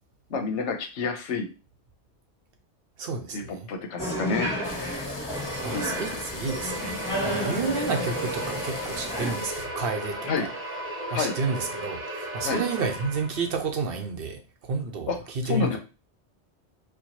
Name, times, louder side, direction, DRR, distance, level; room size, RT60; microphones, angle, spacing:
voice 1, 0.3-1.5 3.3-3.4 3.7-4.5 5.7-6.1 10.2-10.5 11.1-11.4 12.4-12.6 15.1-15.2 15.4-15.8, left 4 dB, 85° left, 1.0 m, -29 dB
voice 2, 3.0-3.7 5.4-10.5 11.1-12.0 12.3-15.8, right 4 dB, 60° right, 0.8 m, -31 dB
sound 1, 4.0-9.3, equal, 10° left, 1.6 m, -32 dB
sound 2, 4.6-9.7, left 4 dB, 50° left, 0.4 m, -41 dB
sound 3, 5.3-13.6, right 1 dB, 15° right, 0.9 m, -35 dB
4.4 x 2.3 x 2.9 m
omnidirectional pair, 1.2 m